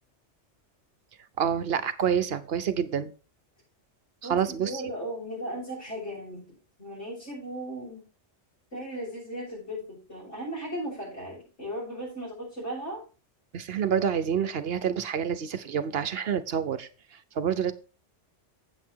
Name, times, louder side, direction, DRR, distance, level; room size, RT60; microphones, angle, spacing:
voice 1, 1.4-3.1 4.3-4.8 13.5-17.7, right 8 dB, 60° right, 12 dB, 0.9 m, -28 dB
voice 2, 4.2-8.1 8.7-13.0, right 1 dB, 85° left, -9 dB, 6.3 m, -37 dB
8.2 x 8.0 x 4.5 m, 0.35 s
omnidirectional pair, 1.2 m